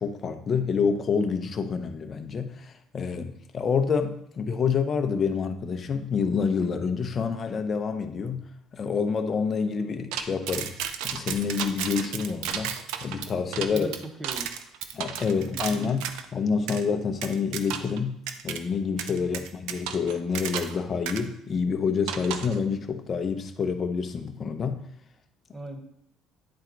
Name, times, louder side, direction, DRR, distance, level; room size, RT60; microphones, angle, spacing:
voice 1, 0.0-8.4 8.7-10.8 11.0-13.9 14.9-18.2 18.4-24.8, left 5 dB, 40° left, 7 dB, 0.8 m, -28 dB
sound 1, 10.1-16.3 16.7-16.8 17.2-18.0 18.3-18.6 19.0-20.8 21.1-21.2 22.1-22.6, right 9 dB, 85° right, 0.5 m, -33 dB
voice 2, 13.7-14.7 15.4-15.7 19.2-19.5 25.5-25.8, right 2 dB, 15° right, 6 dB, 1.0 m, -39 dB
9.6 x 4.3 x 3.9 m, 0.76 s
cardioid pair, 100°, 0 cm